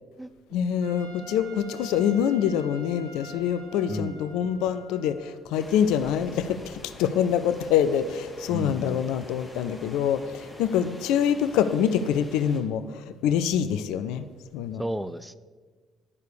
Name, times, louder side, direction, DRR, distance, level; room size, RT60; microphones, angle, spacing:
voice 1, 0.5-14.3 14.5-14.8, left 8 dB, 70° left, 12 dB, 0.4 m, -25 dB
Trumpet, 0.8-5.4, right 3 dB, 70° right, 1.5 m, -47 dB
voice 2, 3.9-4.2 8.5-9.0 14.8-15.4, equal, 5° right, 14 dB, 0.5 m, -32 dB
sound 1, 5.5-12.6, left 1 dB, 15° left, 3.2 m, -46 dB
9.7 x 6.5 x 6.8 m, 1.4 s
hypercardioid pair, 50°, 0 cm